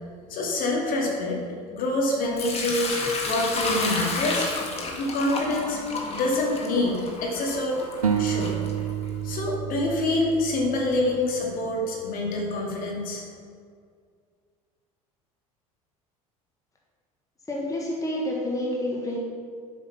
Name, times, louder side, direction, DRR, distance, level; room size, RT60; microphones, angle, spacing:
voice 1, 0.3-1.4 1.7-4.5 5.0-5.8 6.1-6.9 7.2-7.8 8.2-8.5 9.2-13.2, left 2 dB, 50° left, -1 dB, 2.4 m, -26 dB
Sink (filling or washing) / Liquid, 2.4-9.3, left 3 dB, 35° left, 1.9 m, -31 dB
sound 1, 8.0-11.3, right 8 dB, 90° right, 0.6 m, -29 dB
voice 2, 17.5-19.2, left 1 dB, 20° left, -2 dB, 1.7 m, -28 dB
7.9 x 6.3 x 5.8 m, 2.1 s
hypercardioid pair, 75°, 18 cm